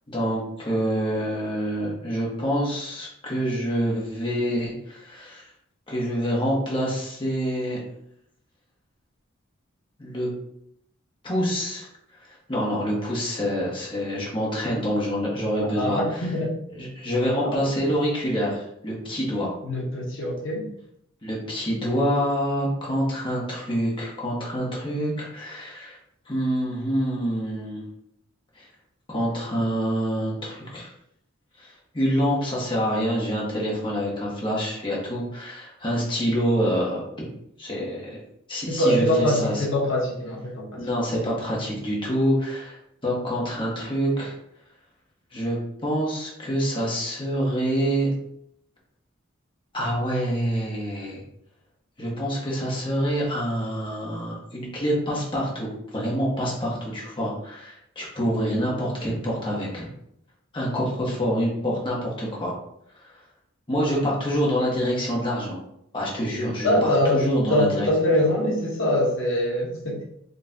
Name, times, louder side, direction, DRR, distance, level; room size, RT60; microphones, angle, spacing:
voice 1, 0.1-5.5 5.9-7.8 10.0-10.3 11.2-16.3 16.7-19.5 21.2-26.0 26.2-27.8 28.5-28.7 29.1-30.9 31.5-37.3 37.6-38.2 38.5-39.6 40.8-44.3 45.3-48.1 49.7-51.2 52.0-59.9 60.5-62.5 62.9-63.2 63.7-65.6 65.9-67.9, equal, 25° left, -4 dB, 1.3 m, -26 dB
voice 2, 15.7-16.5 17.4-17.8 19.6-20.7 38.7-40.8 66.6-67.2 67.5-70.0, left 1 dB, 65° left, -2 dB, 1.0 m, -23 dB
5.5 x 3.2 x 2.8 m, 0.75 s
head